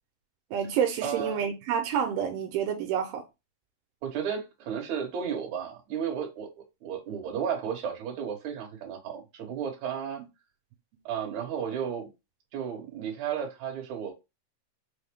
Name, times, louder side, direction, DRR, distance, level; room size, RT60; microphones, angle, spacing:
voice 1, 0.5-3.2, right 8 dB, 85° right, 2.3 m, -28 dB
voice 2, 1.0-1.5 4.0-6.5 6.8-10.2 11.1-12.1 12.5-14.1, right 7 dB, 65° right, 2.3 m, -33 dB
5.8 x 2.1 x 3.5 m
omnidirectional pair, 4.1 m